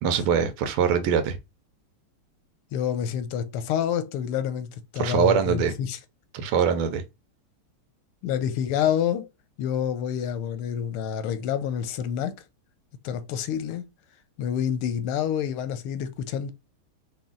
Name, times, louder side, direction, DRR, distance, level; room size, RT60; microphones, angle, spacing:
voice 1, 0.0-1.4 5.0-5.7 6.3-7.0, right 7 dB, 80° right, 1.6 m, -23 dB
voice 2, 2.7-4.7 4.9-6.0 8.2-9.3 9.6-12.3 13.0-13.8 14.4-16.5, left 9 dB, 90° left, 1.6 m, -28 dB
5.1 x 2.5 x 3.7 m
omnidirectional pair, 2.4 m